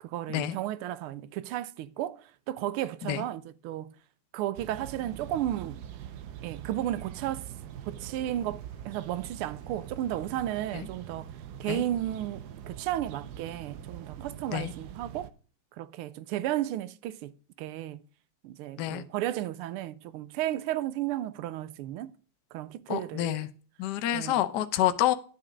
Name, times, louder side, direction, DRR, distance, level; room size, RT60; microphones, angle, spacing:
voice 1, 0.0-3.9 4.3-5.8 6.4-7.5 7.9-11.3 11.6-15.3 15.8-18.0 18.4-22.2 22.5-23.5 24.1-24.6, right 13 dB, 80° right, 1.5 m, -34 dB
sound 1, 4.6-15.3, right 10 dB, 65° right, 1.0 m, -43 dB
voice 2, 22.9-23.5 23.8-25.1, left 12 dB, 65° left, 1.1 m, -28 dB
10.5 x 6.6 x 5.0 m
omnidirectional pair, 2.4 m